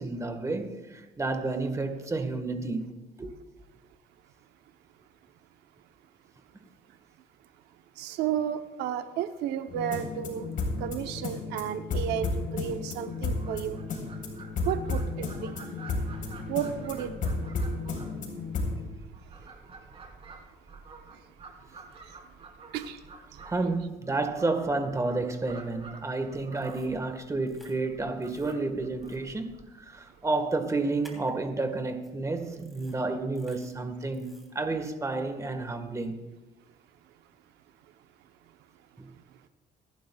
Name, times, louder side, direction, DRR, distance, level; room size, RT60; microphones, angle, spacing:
voice 1, 0.0-2.9 3.2-3.3 23.4-36.2 39.0-39.1, right 3 dB, 20° right, 1.5 m, -31 dB
voice 2, 8.0-10.5 10.8-13.8 14.6-15.7 16.4-17.4 19.2-19.5 21.1-21.3 21.7-22.5 22.7-23.6, right 10 dB, 85° right, 0.8 m, -33 dB
sound 1, 9.7-18.9, left 3 dB, 55° left, 3.9 m, -33 dB
Fowl, 13.1-30.4, right 4 dB, 35° right, 3.2 m, -50 dB
sound 2, 26.6-26.9 27.5-27.7 28.2-28.5 29.0-29.2 31.0-31.3 32.0-32.1 32.5-33.0 33.3-33.7 34.1-34.5, equal, ahead, 3.0 m, -55 dB
26.0 x 11.5 x 2.3 m
cardioid pair, 110°, 17 cm